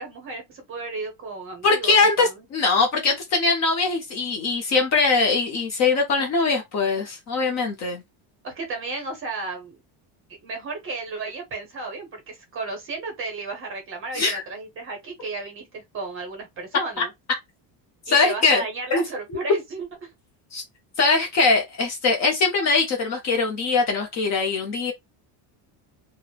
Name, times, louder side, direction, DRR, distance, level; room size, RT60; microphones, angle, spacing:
voice 1, 0.0-2.5 8.4-9.8 10.4-17.1 18.1-19.9, right 3 dB, 25° right, 0.7 m, -33 dB
voice 2, 1.6-8.0 14.1-14.4 17.0-17.1 18.1-18.6 18.9-19.0 20.5-20.6 21.0-24.9, left 4 dB, 35° left, 0.6 m, -21 dB
2.9 x 2.0 x 2.3 m
cardioid pair, 170°, 49 cm